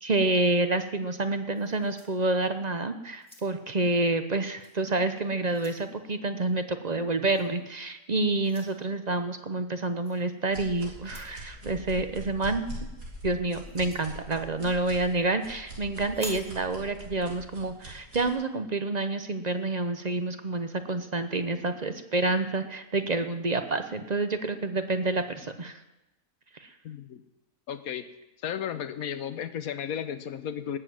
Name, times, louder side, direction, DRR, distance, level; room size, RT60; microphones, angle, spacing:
voice 1, 0.0-12.6 13.2-25.8 26.5-26.7, right 2 dB, 35° right, 8 dB, 0.7 m, -28 dB
sound 1, 1.5-2.7 3.1-3.8 4.6-4.8 5.2-5.9 7.3-7.5 8.4-8.7 10.0-10.2 11.0-11.4 13.6-14.1 16.1-16.5, equal, 5° left, 2.5 m, -46 dB
sound 2, 10.5-18.3, equal, 80° right, 4.4 m, -42 dB
voice 2, 26.8-27.2 27.7-28.0 28.4-30.8, left 9 dB, 65° left, 11 dB, 1.3 m, -34 dB
19.0 x 7.5 x 7.6 m, 0.98 s
omnidirectional pair, 1.7 m